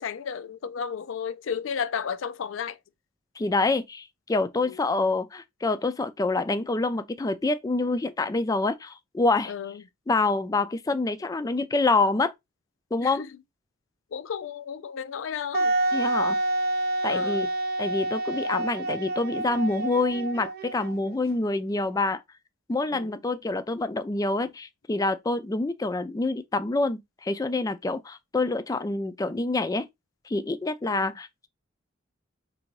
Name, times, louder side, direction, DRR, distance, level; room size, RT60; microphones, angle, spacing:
voice 1, 0.0-2.8 4.6-4.8 9.5-9.8 13.0-13.3 14.1-15.7 17.1-17.5 22.9-23.2 30.9-31.1, left 7 dB, 85° left, 0.4 m, -33 dB
voice 2, 3.4-9.5 10.1-12.3 12.9-13.2 15.9-16.4 17.0-17.5 17.8-22.2 22.7-29.9 30.3-31.5, left 3 dB, 20° left, 0.3 m, -26 dB
Wind instrument woodwind instrument, 15.5-21.1, right 2 dB, 50° right, 0.4 m, -28 dB
3.7 x 2.7 x 4.5 m
head